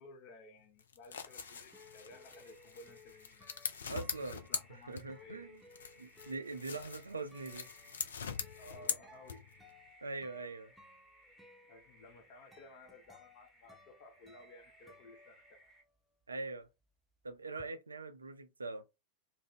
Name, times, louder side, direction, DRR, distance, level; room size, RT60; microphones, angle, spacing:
voice 1, 0.0-3.4 4.5-5.4 8.6-9.7 11.7-15.7, left 2 dB, 45° left, 0.8 m, -56 dB
sound 1, 0.8-5.4 5.7-9.7, left 6 dB, 65° left, 0.4 m, -42 dB
sound 2, 1.1-15.8, right 1 dB, 15° left, 1.2 m, -64 dB
sound 3, 1.4-16.0 16.2-17.7, left 3 dB, 5° right, 0.5 m, -62 dB
voice 2, 3.9-5.6 6.0-7.7 10.0-10.7 16.3-16.7 17.2-18.8, right 3 dB, 75° right, 0.4 m, -43 dB
2.5 x 2.0 x 3.4 m
figure-of-eight pair, 90°, 0 cm